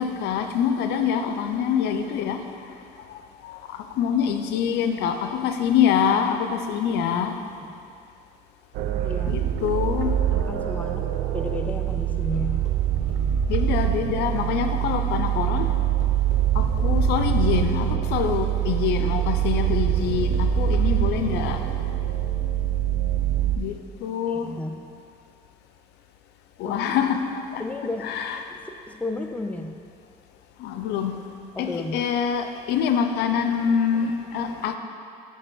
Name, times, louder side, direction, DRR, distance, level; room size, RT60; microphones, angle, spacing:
voice 1, 0.0-2.4 3.4-7.4 9.3-10.1 13.5-15.7 16.5-21.7 23.6-24.5 26.6-27.6 28.1-28.4 30.6-31.2 31.6-34.8, left 8 dB, 80° left, 7 dB, 0.5 m, -25 dB
sound 1, 8.7-23.6, right 10 dB, 80° right, 0.5 m, -24 dB
voice 2, 9.0-9.5 10.3-13.1 24.3-24.9 26.6-26.8 27.6-28.2 28.5-29.8 31.6-32.0, left 2 dB, 10° left, 5 dB, 0.4 m, -33 dB
sound 2, 10.7-14.1 14.3-21.0, left 3 dB, 45° left, 1.3 m, -46 dB
9.4 x 3.3 x 5.4 m, 2.5 s
cardioid pair, 110°, 17 cm